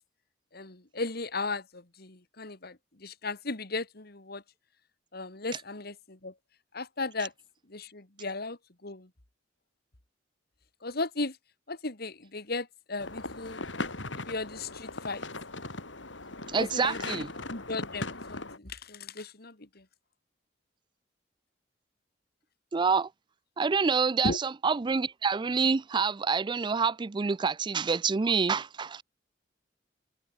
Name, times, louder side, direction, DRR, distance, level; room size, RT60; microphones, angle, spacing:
voice 1, 0.5-4.4 5.1-6.3 6.7-7.3 7.7-9.1 10.8-11.4 11.7-13.7 14.1-15.2 16.6-19.8 24.2-24.4, left 3 dB, 55° left, 2.5 m, -36 dB
sound 1, 13.0-18.6, left 2 dB, 80° left, 6.7 m, -38 dB
voice 2, 16.5-17.3 22.7-23.1 23.6-29.0, right 5 dB, 25° right, 0.4 m, -27 dB
head